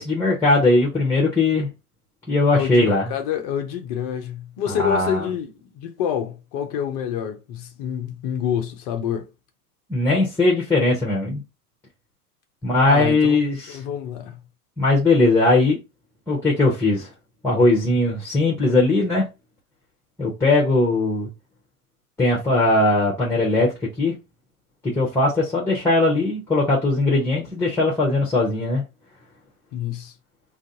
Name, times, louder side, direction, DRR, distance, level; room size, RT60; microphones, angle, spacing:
voice 1, 0.0-1.7 2.3-3.1 4.7-5.2 9.9-11.4 12.6-13.8 14.8-15.8 16.3-17.1 17.4-19.3 20.2-21.3 22.2-23.7 24.0-24.1 24.8-28.8, left 2 dB, 5° left, 0.8 m, -19 dB
voice 2, 2.5-9.3 12.9-13.4 13.7-14.4 29.7-30.1, left 9 dB, 25° left, 0.4 m, -27 dB
2.5 x 2.3 x 3.8 m
hypercardioid pair, 105°, 47 cm